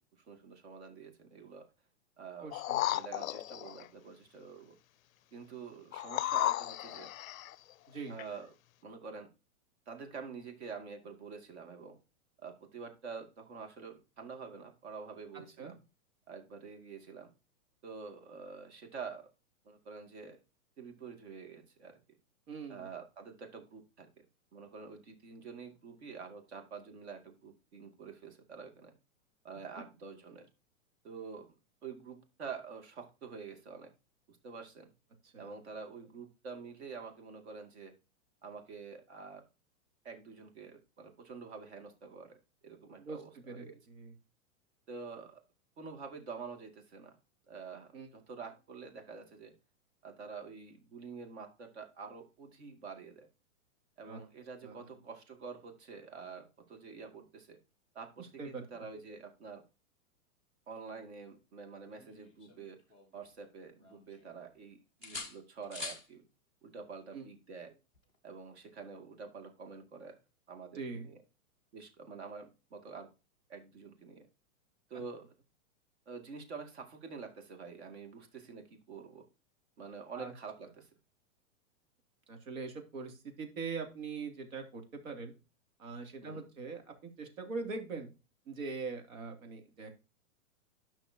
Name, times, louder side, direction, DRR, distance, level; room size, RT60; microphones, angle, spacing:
voice 1, 0.0-1.6 2.2-2.5 2.9-4.8 5.3-7.1 8.1-8.5 8.8-9.3 9.9-12.0 12.4-15.8 16.3-17.3 17.8-19.3 19.6-20.4 20.8-22.0 22.7-24.3 24.5-28.9 29.4-30.5 31.0-31.5 31.8-33.9 34.3-34.9 35.4-37.9 38.4-39.4 40.0-42.4 42.6-43.8 44.9-45.4 45.8-47.2 47.5-49.5 50.0-53.3 54.0-57.6 57.9-59.6 60.7-62.8 63.1-66.2 66.6-67.8 68.2-70.2 70.5-71.2 71.7-73.1 73.5-74.3 74.9-75.3 76.1-79.2 79.8-80.9 86.2-86.4, right 5 dB, 50° right, 5 dB, 2.3 m, -47 dB
voice 2, 2.4-2.8 7.9-8.1 15.6-15.7 22.5-22.9 29.7-29.8 35.2-35.5 43.0-44.1 47.9-48.1 54.0-54.2 54.6-54.9 58.2-58.6 67.1-67.3 70.7-71.1 80.1-80.3 82.3-85.3 85.8-88.1 88.5-89.9, right 4 dB, 65° right, 4 dB, 2.9 m, -42 dB
sound 1, 2.5-3.9 5.9-7.5 8.2-8.3, left 14 dB, 70° left, 0.5 m, -34 dB
sound 2, 61.9-63.4 63.8-64.6 65.0-66.1 67.9-68.2, left 3 dB, 10° right, 0.5 m, -46 dB
12.0 x 6.0 x 2.8 m, 0.30 s
hypercardioid pair, 170°, 43 cm